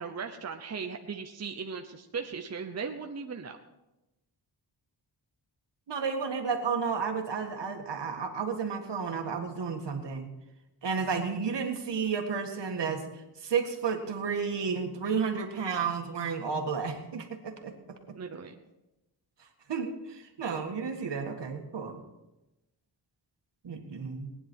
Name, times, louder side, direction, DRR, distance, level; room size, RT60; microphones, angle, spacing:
voice 1, 0.0-3.6 18.1-18.6, right 5 dB, 35° right, 5 dB, 0.8 m, -37 dB
voice 2, 5.9-10.3 10.8-17.7 18.1-18.2 19.4-22.0 23.6-24.3, right 5 dB, 70° right, 4 dB, 1.9 m, -32 dB
19.0 x 10.0 x 4.6 m, 0.96 s
wide cardioid pair, 145°, 43 cm